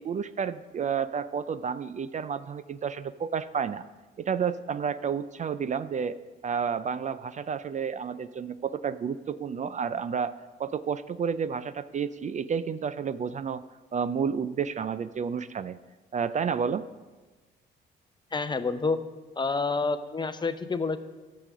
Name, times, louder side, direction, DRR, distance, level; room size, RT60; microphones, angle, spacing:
voice 1, 0.0-3.8 4.2-6.2 6.4-10.3 10.6-13.6 13.9-15.8 16.1-16.8, right 6 dB, 40° right, 14 dB, 0.4 m, -30 dB
voice 2, 18.3-19.0 19.4-21.0, left 4 dB, 25° left, 11 dB, 0.6 m, -28 dB
11.0 x 6.8 x 6.1 m, 1.2 s
cardioid pair, 90°, 20 cm